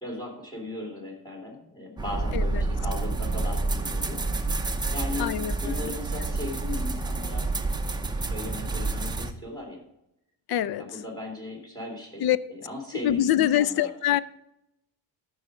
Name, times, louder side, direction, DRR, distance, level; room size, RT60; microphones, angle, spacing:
voice 1, 0.0-4.2 4.9-5.3 5.6-7.5 8.0-9.8 10.8-12.2 12.5-13.9, left 2 dB, 10° left, 3.5 m, -37 dB
sound 1, 2.0-9.3, right 3 dB, 10° right, 0.6 m, -29 dB
voice 2, 5.2-5.9 10.5-11.0 12.2-12.4 13.0-14.2, left 12 dB, 65° left, 0.6 m, -25 dB
13.5 x 5.6 x 4.9 m
cardioid pair, 145°, 41 cm